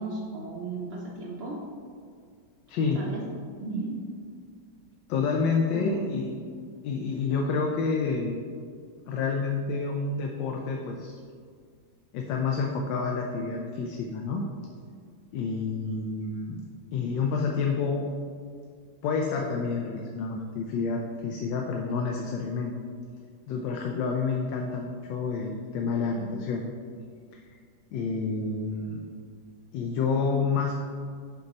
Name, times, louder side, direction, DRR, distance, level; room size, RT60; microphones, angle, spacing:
voice 1, 0.0-1.6 2.9-3.2 3.6-4.0 5.7-6.3, right 2 dB, 80° right, -3 dB, 0.5 m, -34 dB
voice 2, 2.7-3.0 5.1-6.3 6.8-8.4 9.1-11.2 12.1-14.4 15.3-16.6 16.9-18.1 19.0-22.7 23.5-26.6 27.3-27.4 27.9-29.0 29.7-30.7, left 4 dB, 80° left, 1 dB, 1.3 m, -29 dB
6.7 x 3.9 x 4.0 m, 2.1 s
omnidirectional pair, 2.0 m